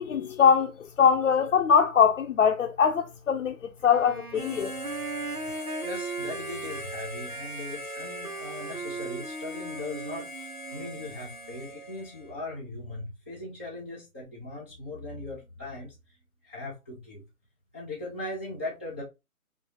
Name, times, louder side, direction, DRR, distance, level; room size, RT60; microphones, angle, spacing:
voice 1, 0.0-4.7, left 7 dB, 60° left, 0.6 m, -22 dB
Wind instrument woodwind instrument, 3.8-11.7, right 3 dB, 85° right, 1.3 m, -39 dB
Harmonica, 4.3-12.4, equal, 20° left, 0.9 m, -41 dB
voice 2, 5.8-16.0 16.4-17.2 17.7-19.0, left 2 dB, 10° right, 0.5 m, -39 dB
5.4 x 2.7 x 3.0 m
hypercardioid pair, 155°, 44 cm